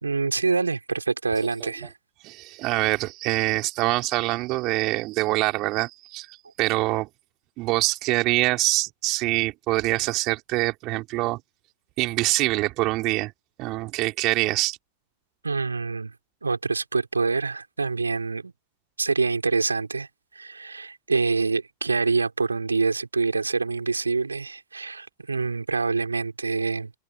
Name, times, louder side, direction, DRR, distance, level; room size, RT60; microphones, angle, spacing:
voice 1, 0.0-1.9 15.4-16.1 16.4-18.5 19.0-20.1 20.3-26.9, right 4 dB, 80° right, 3.9 m, -26 dB
voice 2, 2.2-7.1 7.6-11.4 12.0-13.3 13.6-14.8, right 20 dB, 40° right, 4.7 m, -25 dB
figure-of-eight pair, 90°, 0 cm